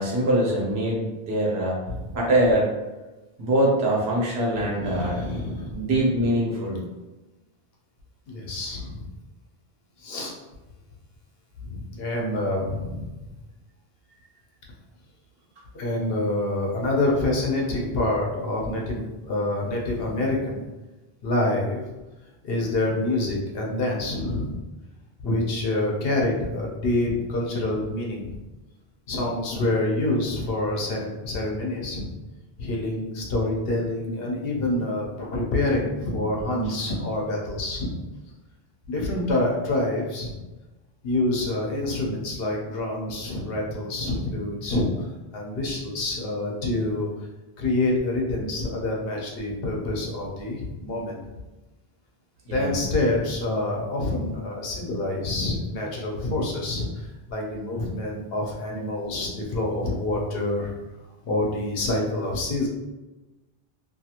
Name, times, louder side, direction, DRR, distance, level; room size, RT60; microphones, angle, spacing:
voice 1, 0.0-1.8 2.1-2.7 3.4-5.2 5.7-6.8 52.5-52.7, right 1 dB, 80° right, -3 dB, 1.1 m, -23 dB
voice 2, 4.6-5.7 8.3-9.0 10.0-10.3 11.7-13.1 15.7-20.6 21.2-21.8 22.4-24.5 25.2-28.4 29.1-32.1 32.6-37.9 38.9-40.3 41.0-45.1 45.3-47.1 47.6-51.2 52.5-60.7 61.2-62.7, left 2 dB, 70° left, -1 dB, 0.9 m, -27 dB
2.6 x 2.4 x 2.8 m, 1.1 s
omnidirectional pair, 1.0 m